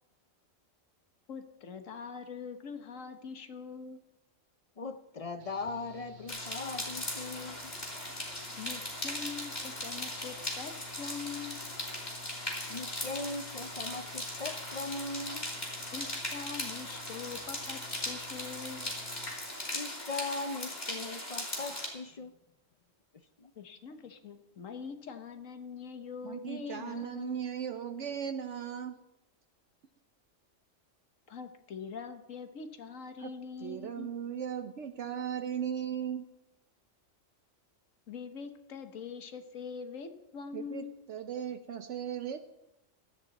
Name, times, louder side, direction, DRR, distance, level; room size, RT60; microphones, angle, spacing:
voice 1, 1.3-4.0 8.6-11.6 15.9-18.9 23.6-27.5 31.3-34.1 38.1-41.0, left 6 dB, 80° left, 1.5 m, -43 dB
voice 2, 4.8-7.7 12.7-15.5 19.7-22.3 23.4-23.5, left 3 dB, 55° left, 0.4 m, -39 dB
Engine / Mechanical fan, 5.4-19.3, left 4 dB, 40° right, 1.1 m, -54 dB
sound 1, 6.3-21.9, left 1 dB, 35° left, 3.4 m, -39 dB
voice 3, 26.2-29.0 33.2-33.3 33.6-36.3 40.5-42.5, right 8 dB, 65° right, 1.0 m, -37 dB
16.5 x 13.0 x 4.1 m
omnidirectional pair, 1.3 m